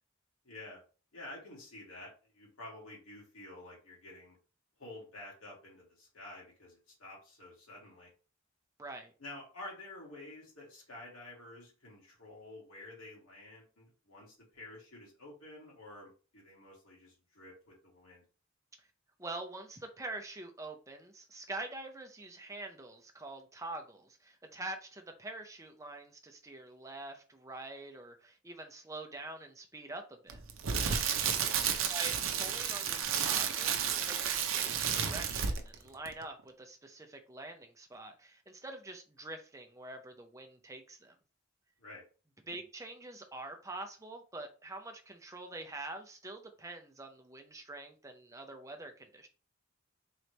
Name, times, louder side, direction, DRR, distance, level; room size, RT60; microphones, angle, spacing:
voice 1, 0.4-0.8 1.1-4.4 4.8-8.1 9.2-18.2 41.8-42.1, left 2 dB, 80° left, 2.2 m, -50 dB
voice 2, 8.8-9.1 19.2-30.4 31.9-41.1 42.5-49.3, right 2 dB, 15° right, 0.6 m, -45 dB
Crackle, 30.3-35.8 36.1-36.2, right 7 dB, 70° right, 0.6 m, -32 dB
4.0 x 3.1 x 3.3 m
head